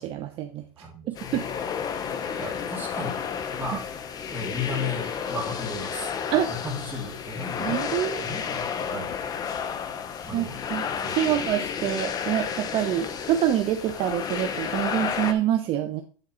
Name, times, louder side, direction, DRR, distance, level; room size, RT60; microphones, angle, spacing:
voice 1, 0.0-0.6 1.1-1.5 6.3-6.6 7.6-8.3 10.3-10.4 10.7-16.0, right 11 dB, 35° right, 5 dB, 0.7 m, -26 dB
voice 2, 0.8-1.6 2.4-3.2 3.6-3.9 4.3-6.1 6.4-9.1 10.2-11.4, left 3 dB, 10° right, -1 dB, 2.1 m, -35 dB
sound 1, 1.2-15.3, left 7 dB, 25° left, 0.7 m, -31 dB
9.7 x 3.7 x 4.3 m, 0.38 s
supercardioid pair, 140°, 16 cm